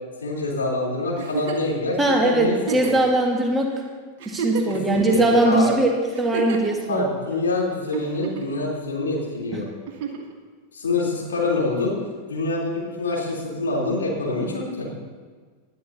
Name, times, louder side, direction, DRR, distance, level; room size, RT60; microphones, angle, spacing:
voice 1, 0.2-2.0 2.2-2.8 4.7-5.8 6.9-9.7 10.7-11.9 12.3-14.9, left 2 dB, 70° left, -3 dB, 3.5 m, -25 dB
Giggle, 1.2-1.7 2.6-3.1 3.7-3.8 4.2-5.0 6.1-6.8 7.9-8.6 9.9-10.3 11.8-11.9, right 6 dB, 50° right, 1.7 m, -31 dB
voice 2, 2.0-3.7 4.3-5.9 6.2-7.0, right 2 dB, 10° right, 1 dB, 1.7 m, -20 dB
19.5 x 11.0 x 2.8 m, 1.5 s
figure-of-eight pair, 90°, 0 cm